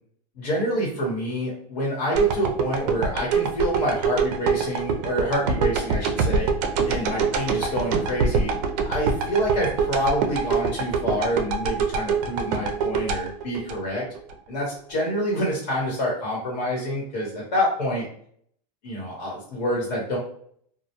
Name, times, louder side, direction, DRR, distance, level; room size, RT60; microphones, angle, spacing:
voice 1, 0.4-6.5 6.9-8.5 8.9-14.0 14.5-18.1 18.8-20.2, equal, 80° left, -4 dB, 1.1 m, -27 dB
sound 1, 2.1-14.3 14.8-14.9, right 5 dB, 70° right, 0.5 m, -24 dB
2.2 x 2.1 x 2.8 m, 0.62 s
supercardioid pair, 120°, 21 cm